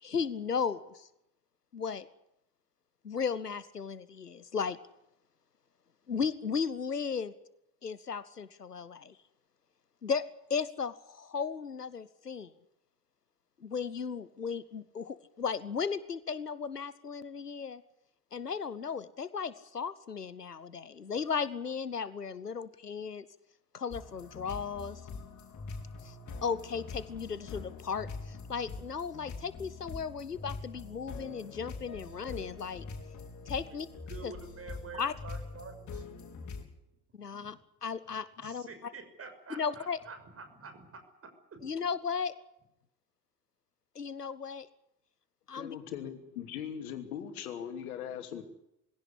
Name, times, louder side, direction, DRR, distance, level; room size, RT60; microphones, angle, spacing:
voice 1, 0.0-1.1 1.7-2.1 3.0-4.8 6.1-7.3 7.8-9.2 10.0-12.5 13.6-17.8 18.3-23.3 23.7-25.0 26.0-26.2 26.4-32.8 33.5-33.9 34.2-34.3 35.0-35.1 37.2-38.7 39.5-40.0 41.6-42.3 43.9-44.7 45.5-45.8, left 6 dB, 85° left, 17 dB, 1.0 m, -35 dB
sound 1, 23.9-36.6, left 4 dB, 40° left, 4.8 m, -44 dB
voice 2, 34.1-36.0 37.4-37.5 38.4-41.7, right 4 dB, 30° right, 8 dB, 6.3 m, -48 dB
voice 3, 45.5-48.4, left 9 dB, 65° left, 8 dB, 2.9 m, -40 dB
22.0 x 17.0 x 9.9 m, 0.82 s
figure-of-eight pair, 60°, 46 cm